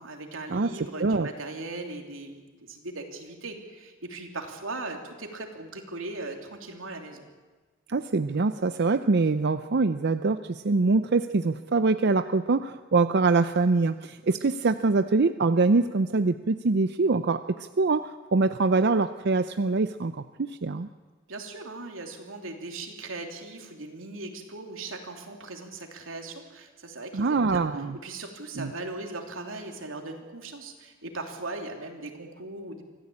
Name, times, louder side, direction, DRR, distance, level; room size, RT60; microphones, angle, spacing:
voice 1, 0.0-7.2 21.3-27.7 28.0-32.8, right 2 dB, 90° right, 3 dB, 3.1 m, -39 dB
voice 2, 7.9-20.9 27.1-28.0 28.6-28.7, right 3 dB, 55° right, 10 dB, 0.6 m, -24 dB
24.5 x 15.5 x 8.6 m, 1.3 s
head